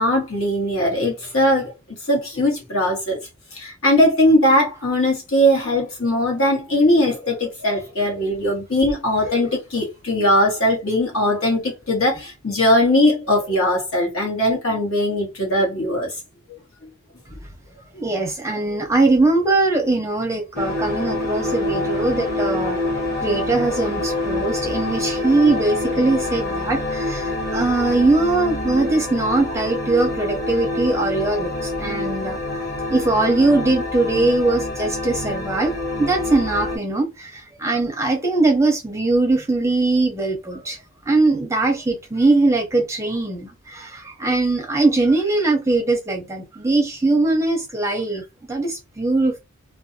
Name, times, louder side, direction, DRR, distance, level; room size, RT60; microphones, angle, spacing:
voice 1, 0.0-1.7 2.1-3.2 3.5-16.1, left 1 dB, 70° left, 1.3 m, -19 dB
voice 2, 17.9-22.8 23.2-40.8 41.1-49.4, right 2 dB, 15° right, 0.5 m, -21 dB
sound 1, 20.5-36.8, left 2 dB, 45° left, 1.2 m, -26 dB
2.5 x 2.2 x 2.6 m
head